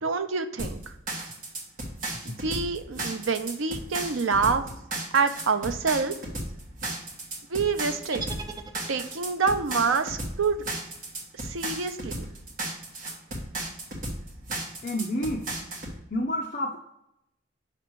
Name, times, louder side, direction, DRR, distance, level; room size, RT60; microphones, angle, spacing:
voice 1, 0.0-0.9 2.2-4.6 5.1-6.1 7.5-8.2 8.9-10.6 11.4-12.3, right 5 dB, 80° right, 8 dB, 0.6 m, -27 dB
sound 1, 0.6-16.0, right 2 dB, 45° right, 1.4 m, -35 dB
sound 2, 8.1-9.4, right 4 dB, 20° right, 0.5 m, -40 dB
voice 2, 14.8-15.5 16.1-16.8, left 1 dB, 45° left, -1 dB, 0.6 m, -29 dB
5.9 x 3.5 x 4.5 m, 0.80 s
head